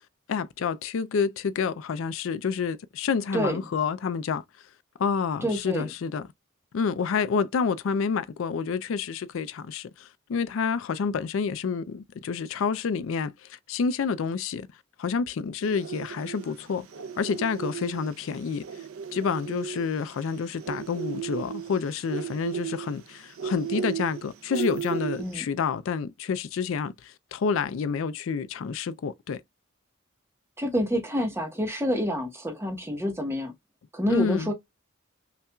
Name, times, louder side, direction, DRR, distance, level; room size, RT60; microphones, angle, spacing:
voice 1, 0.3-4.4 5.0-6.3 6.7-14.7 15.0-16.9 17.2-18.8 19.1-29.4 34.1-34.5, left 5 dB, 65° left, 0.4 m, -28 dB
voice 2, 5.4-5.9 25.2-25.4 30.6-33.5 33.9-34.5, equal, 10° right, 0.9 m, -27 dB
sound 1, 15.6-25.4, right 8 dB, 85° right, 0.5 m, -35 dB
5.6 x 2.4 x 2.2 m
head